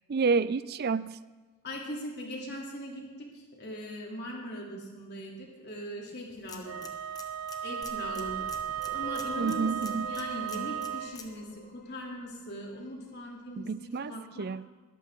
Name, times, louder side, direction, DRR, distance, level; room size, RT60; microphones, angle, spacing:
voice 1, 0.1-1.2 9.4-10.1 13.6-14.6, right 5 dB, 45° right, 17 dB, 0.4 m, -29 dB
voice 2, 1.6-6.9 7.6-14.5, equal, 50° left, -1 dB, 3.1 m, -40 dB
sound 1, 6.3-11.4, left 4 dB, 15° left, 1.2 m, -50 dB
Wind instrument woodwind instrument, 6.6-11.2, right 9 dB, 80° right, 0.7 m, -35 dB
sound 2, 7.8-12.7, left 3 dB, 35° left, 1.8 m, -47 dB
20.5 x 13.5 x 3.8 m, 1.3 s
head